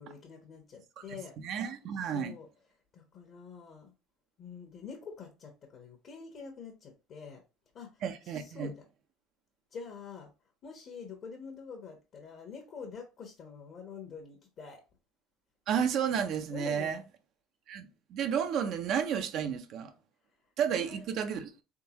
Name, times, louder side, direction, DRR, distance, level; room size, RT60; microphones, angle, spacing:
voice 1, 0.0-1.3 1.9-2.5 2.9-3.9 4.4-7.4 7.7-8.8 9.7-10.3 10.6-14.8 16.5-17.0 20.7-21.3, left 5 dB, 45° left, 1.0 m, -46 dB
voice 2, 1.4-2.4 8.0-8.7 15.7-17.0 17.7-19.9 20.6-21.5, right 8 dB, 55° right, 0.6 m, -32 dB
3.7 x 3.4 x 2.9 m
supercardioid pair, 115°, 0 cm